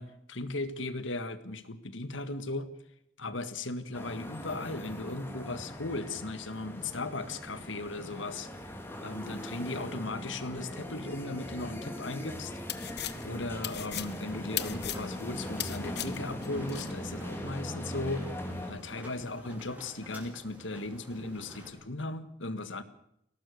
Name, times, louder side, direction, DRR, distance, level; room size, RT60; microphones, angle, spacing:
voice 1, 0.0-2.7 3.2-8.5 9.0-12.5 13.2-18.3 18.7-22.8, left 2 dB, 80° left, 11 dB, 1.8 m, -37 dB
sound 1, 3.9-18.7, left 1 dB, 10° left, 2.9 m, -40 dB
sound 2, 12.4-16.9, left 13 dB, 60° left, 1.1 m, -37 dB
sound 3, 13.7-21.7, equal, 10° right, 5.1 m, -49 dB
22.0 x 18.0 x 6.7 m, 0.76 s
head